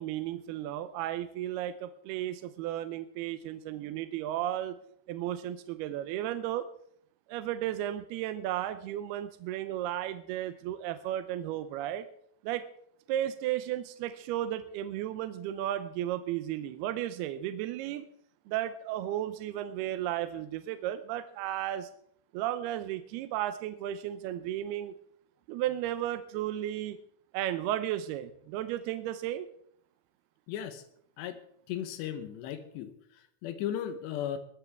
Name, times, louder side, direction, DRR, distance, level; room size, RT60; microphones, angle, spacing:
voice 1, 0.0-4.8 5.1-6.7 7.3-12.1 12.4-12.7 13.1-18.1 18.5-21.9 22.3-24.9 25.5-27.0 27.3-29.5, right 12 dB, 80° right, 11 dB, 2.4 m, -34 dB
voice 2, 30.5-30.8 31.2-31.4 31.7-32.9 33.4-34.4, left 10 dB, 75° left, 9 dB, 3.1 m, -35 dB
20.5 x 13.0 x 3.5 m, 0.67 s
omnidirectional pair, 5.2 m